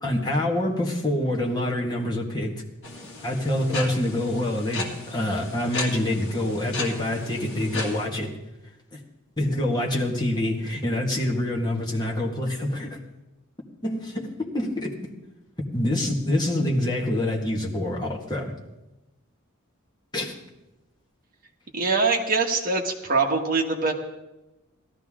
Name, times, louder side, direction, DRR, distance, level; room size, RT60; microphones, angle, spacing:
voice 1, 0.0-2.6 3.2-8.3 8.9-9.0 9.4-13.0 13.8-15.0 15.7-18.5 20.1-20.3, left 1 dB, 20° left, -2 dB, 1.8 m, -26 dB
sound 1, 2.8-8.1, left 2 dB, 55° left, 2.2 m, -36 dB
voice 2, 21.7-23.9, right 4 dB, 40° right, 1 dB, 1.5 m, -23 dB
17.5 x 13.5 x 3.7 m, 0.99 s
head